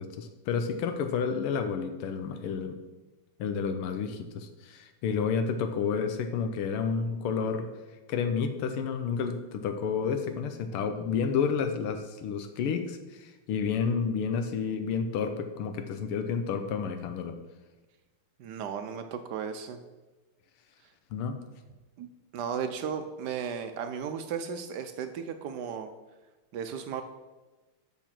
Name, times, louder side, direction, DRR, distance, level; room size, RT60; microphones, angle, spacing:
voice 1, 0.0-2.8 3.4-7.7 8.1-17.3 21.1-21.4, left 6 dB, 85° left, 7 dB, 1.6 m, -30 dB
voice 2, 18.4-19.8 22.0-22.1 22.3-25.9 26.5-27.0, right 7 dB, 75° right, 8 dB, 1.0 m, -35 dB
7.0 x 6.5 x 5.9 m, 1.2 s
omnidirectional pair, 2.4 m